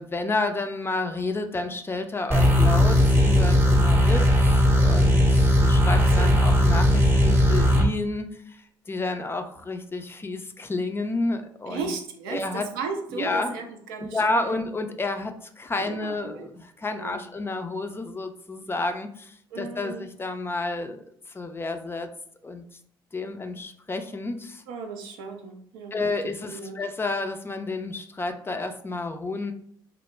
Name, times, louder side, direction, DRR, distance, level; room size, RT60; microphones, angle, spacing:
voice 1, 0.0-11.9 12.3-12.7 13.1-13.5 14.0-22.1 22.4-22.6 23.1-24.6 25.9-29.5, left 2 dB, 20° left, 7 dB, 0.4 m, -30 dB
sound 1, 2.3-7.9, equal, 20° right, 0.7 m, -18 dB
voice 2, 6.0-6.3 11.7-14.5 15.9-16.5 17.0-17.2 19.5-20.1 24.7-26.0 26.4-26.8, right 5 dB, 75° right, 4 dB, 0.4 m, -36 dB
2.2 x 2.0 x 3.1 m, 0.64 s
hypercardioid pair, 55°, 12 cm